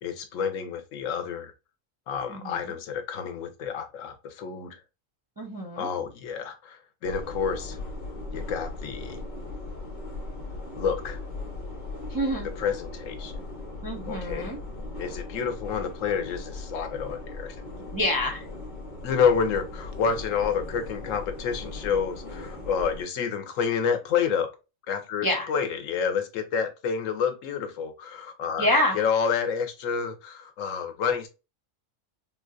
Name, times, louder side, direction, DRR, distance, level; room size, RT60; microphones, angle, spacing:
voice 1, 0.0-1.5 2.1-4.8 5.8-7.8 8.3-9.2 10.8-11.2 12.6-13.3 14.1-14.5 15.0-17.6 19.0-24.5 24.9-28.7 28.9-31.3, left 6 dB, 80° left, 1.0 m, -29 dB
voice 2, 2.3-2.7 5.4-5.9 12.1-12.5 13.8-14.6 17.9-18.5 25.2-25.5 28.6-29.0, left 1 dB, 25° right, 0.4 m, -27 dB
sound 1, 7.0-23.0, left 2 dB, 40° left, 0.9 m, -38 dB
3.8 x 2.2 x 2.4 m
omnidirectional pair, 1.4 m